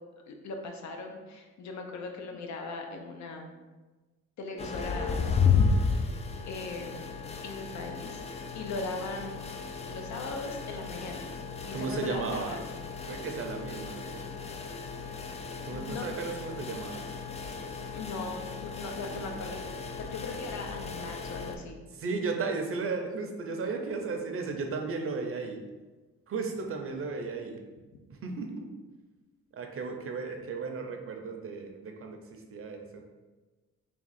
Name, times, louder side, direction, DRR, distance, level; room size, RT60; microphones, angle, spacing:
voice 1, 0.3-3.5 4.4-5.2 5.7-6.1 6.5-7.0 7.4-8.2 8.5-9.3 9.9-11.3 11.7-12.7 15.7-16.1 17.9-19.6 20.0-21.8, left 3 dB, 65° left, 3 dB, 0.7 m, -39 dB
sound 1, 4.6-21.6, left 5 dB, 20° left, 0.3 m, -33 dB
voice 2, 11.7-12.6 13.1-14.2 15.7-17.0 22.0-25.6 26.3-27.6 28.1-28.7 29.5-32.2 32.5-32.9, right 4 dB, 45° right, 3 dB, 0.6 m, -34 dB
3.5 x 2.3 x 4.1 m, 1.2 s
cardioid pair, 90°, 30 cm